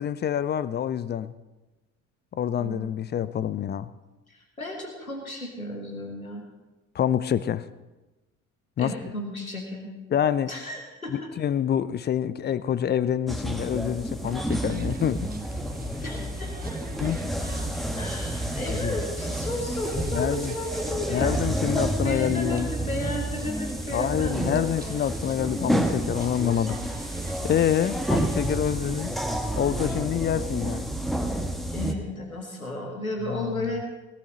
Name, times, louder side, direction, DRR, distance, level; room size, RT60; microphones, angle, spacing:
voice 1, 0.0-1.3 2.3-3.9 6.9-7.7 8.8-8.9 10.1-10.5 11.1-15.3 17.0-17.2 18.7-19.0 20.1-20.5 21.1-22.7 23.9-26.8 27.4-29.1 29.5-30.9 33.3-33.5, left 9 dB, 25° left, 16 dB, 0.5 m, -26 dB
voice 2, 2.6-3.0 4.3-6.4 8.8-9.9 10.5-11.3 16.0-16.8 18.0-24.7 31.7-33.8, left 1 dB, 90° left, 1 dB, 1.5 m, -34 dB
sound 1, 13.3-31.9, right 1 dB, ahead, 1.2 m, -30 dB
sound 2, 14.2-29.2, right 4 dB, 20° right, 1.3 m, -47 dB
18.0 x 11.5 x 4.0 m, 1.1 s
figure-of-eight pair, 55°, 41 cm